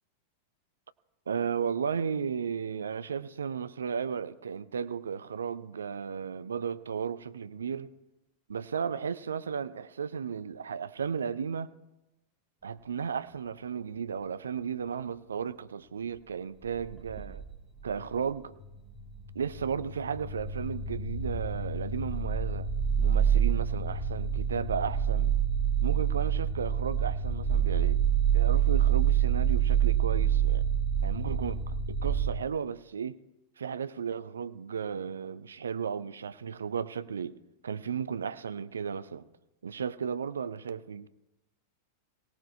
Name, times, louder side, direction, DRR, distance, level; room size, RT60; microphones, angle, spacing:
voice 1, 1.3-7.9 8.5-11.7 12.6-17.4 17.8-18.5 19.3-22.7 23.0-25.3 25.8-28.0 28.3-30.7 31.0-33.2 33.6-37.4 37.6-39.3 39.6-41.1, right 7 dB, 70° right, 0.6 m, -34 dB
sound 1, 16.6-18.2 18.5-32.3, right 8 dB, 10° right, 2.3 m, -27 dB
23.0 x 18.0 x 2.7 m
figure-of-eight pair, 90°, 0 cm